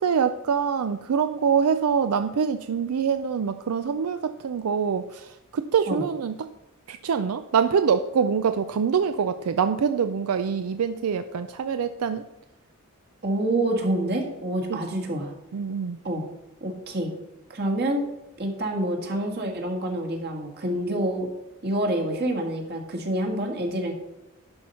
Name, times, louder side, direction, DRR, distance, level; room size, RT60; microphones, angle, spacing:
voice 1, 0.0-6.5 6.9-12.2 14.7-14.8 15.5-16.0, right 6 dB, 85° right, 10 dB, 0.4 m, -25 dB
voice 2, 13.2-15.3 16.0-16.2 16.6-17.1 17.5-18.0 18.4-21.3 21.6-23.9, right 1 dB, 50° right, 2 dB, 1.7 m, -27 dB
11.0 x 4.5 x 5.5 m, 0.99 s
head